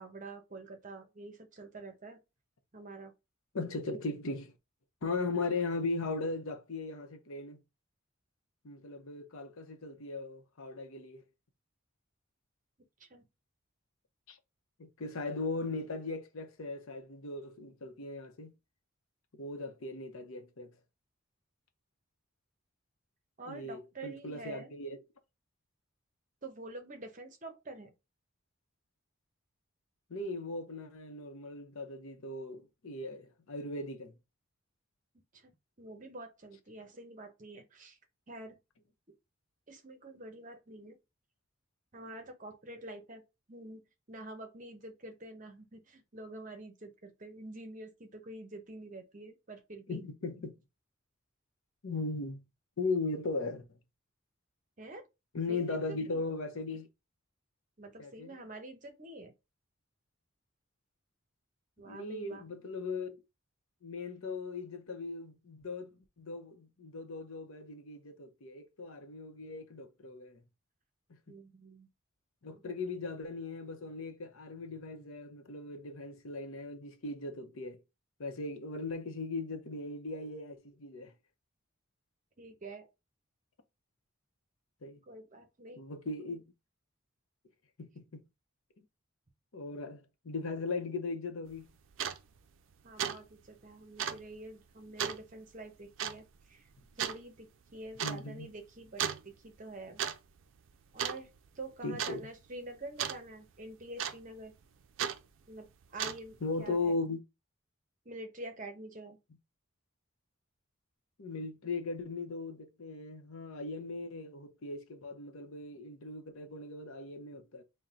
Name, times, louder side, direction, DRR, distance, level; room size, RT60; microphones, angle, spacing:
voice 1, 0.0-2.2 2.7-3.1 13.0-13.2 23.4-24.7 26.4-27.9 35.3-35.5 35.8-38.0 38.3-38.6 39.7-41.0 41.9-43.2 43.5-43.8 44.1-50.0 54.8-55.1 55.5-55.8 56.1-56.2 57.8-59.3 61.8-62.4 71.3-71.9 72.6-72.7 82.4-82.9 85.1-85.8 92.8-96.7 97.0-100.0 100.9-101.3 101.5-104.5 105.5-106.9 108.0-109.2, right 2 dB, 35° right, 0.8 m, -47 dB
voice 2, 3.5-4.5 5.0-7.6 8.6-11.2 14.3-14.4 14.8-18.5 19.3-20.7 23.5-25.0 30.1-34.1 49.9-50.5 51.8-52.4 52.8-53.7 55.3-56.9 58.0-58.3 61.8-63.2 63.8-70.4 72.4-77.8 78.2-81.1 84.8-85.0 85.8-86.4 87.8-88.2 88.8-88.9 89.5-91.6 98.0-98.5 101.8-102.3 106.4-107.2 111.2-117.6, left 3 dB, 75° left, 0.7 m, -38 dB
sound 1, 91.5-91.6 91.9-92.2 92.6-92.7 93.0-93.2 93.5-93.6 94.0-94.2 95.0-95.2 96.0-96.2 97.0-97.2 98.0-98.2 99.0-99.2 99.8-100.2 100.4-100.7 101.0-101.5 102.0-102.2 103.0-103.2 104.0-104.4 105.0-105.2 105.8-106.4, right 8 dB, 65° right, 0.4 m, -34 dB
3.8 x 2.2 x 4.3 m
head